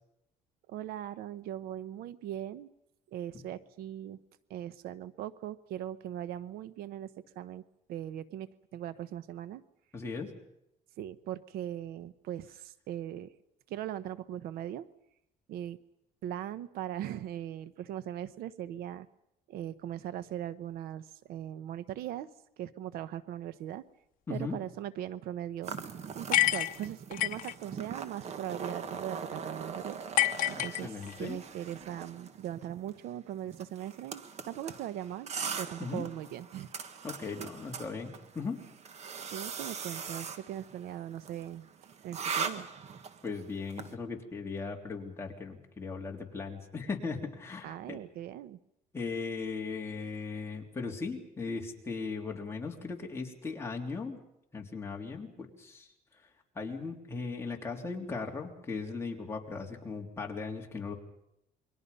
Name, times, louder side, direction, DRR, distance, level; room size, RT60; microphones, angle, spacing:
voice 1, 0.7-2.7 3.1-4.2 4.5-7.1 7.3-7.6 7.9-9.6 11.0-13.3 13.7-14.8 15.5-15.8 16.2-19.1 19.5-22.3 22.6-23.8 24.3-25.7 26.1-30.0 30.5-36.7 37.4-37.5 39.3-41.7 42.0-42.7 47.6-48.6, right 11 dB, 85° right, 15 dB, 1.0 m, -40 dB
voice 2, 9.9-10.3 24.3-24.6 30.5-31.4 35.8-36.0 37.0-38.6 43.2-48.0 48.9-54.2 54.5-55.9 56.5-60.9, left 4 dB, 15° left, 0 dB, 3.3 m, -38 dB
sound 1, 25.6-43.9, right 6 dB, 45° right, 1.5 m, -41 dB
sound 2, 26.3-27.5 30.2-31.3, left 14 dB, 65° left, 0.9 m, -28 dB
28.5 x 22.5 x 5.5 m, 0.81 s
cardioid pair, 145°, 15 cm